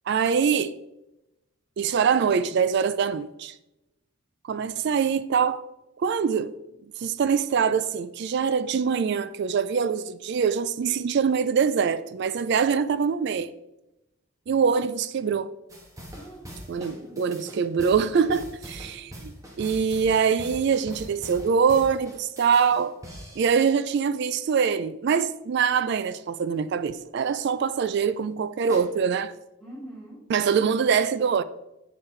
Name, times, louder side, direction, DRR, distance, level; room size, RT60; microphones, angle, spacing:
voice 1, 0.1-0.7 1.8-3.5 4.5-5.6 6.0-6.6 7.0-13.5 14.5-15.5 16.7-19.3 19.6-22.9 23.4-29.3 30.3-31.4, right 6 dB, 55° right, 0.3 m, -24 dB
sound 1, 15.7-23.9 28.7-28.8, equal, 15° right, 1.1 m, -42 dB
voice 2, 16.1-17.5 29.6-30.2, right 1 dB, ahead, 2.8 m, -44 dB
7.5 x 6.3 x 3.2 m
head